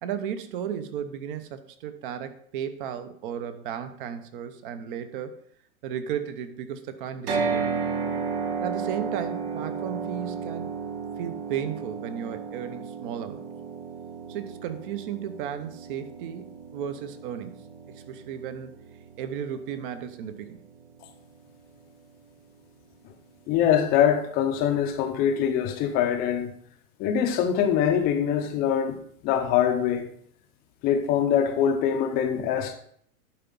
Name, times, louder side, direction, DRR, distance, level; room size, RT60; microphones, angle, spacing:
voice 1, 0.0-5.4 5.8-7.7 8.6-10.8 11.2-13.5 14.3-17.6 17.9-18.7 19.2-20.6, right 9 dB, 35° right, 0.9 m, -34 dB
sound 1, 7.3-21.4, right 5 dB, 85° right, 2.8 m, -34 dB
voice 2, 23.5-26.5 27.0-29.0 29.2-30.1 30.8-32.7, left 9 dB, 20° left, 0.7 m, -23 dB
11.0 x 4.6 x 5.4 m
hypercardioid pair, 150°, 45 cm